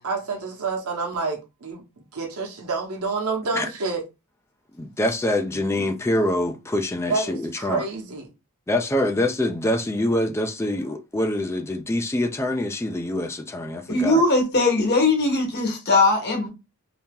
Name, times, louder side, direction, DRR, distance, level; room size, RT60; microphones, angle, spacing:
voice 1, 0.0-1.8 2.1-4.0 7.1-8.3, right 4 dB, 85° right, 1.0 m, -28 dB
voice 2, 4.7-7.8 8.7-14.2, left 1 dB, 10° left, 0.4 m, -25 dB
voice 3, 13.9-16.5, left 2 dB, 50° left, 1.2 m, -20 dB
2.8 x 2.7 x 3.6 m
head